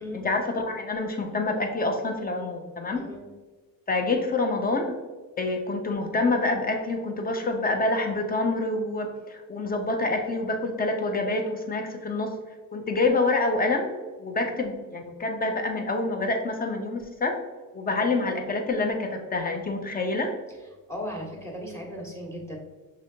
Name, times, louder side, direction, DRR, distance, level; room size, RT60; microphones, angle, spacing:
voice 1, 0.1-3.0 3.9-5.0 5.4-12.4 12.7-17.4 17.7-20.3, left 2 dB, 25° left, 4 dB, 0.8 m, -27 dB
voice 2, 2.9-3.3 20.9-22.6, equal, 10° left, -1 dB, 1.3 m, -36 dB
6.1 x 3.1 x 2.8 m, 1.3 s
cardioid pair, 110°, 35 cm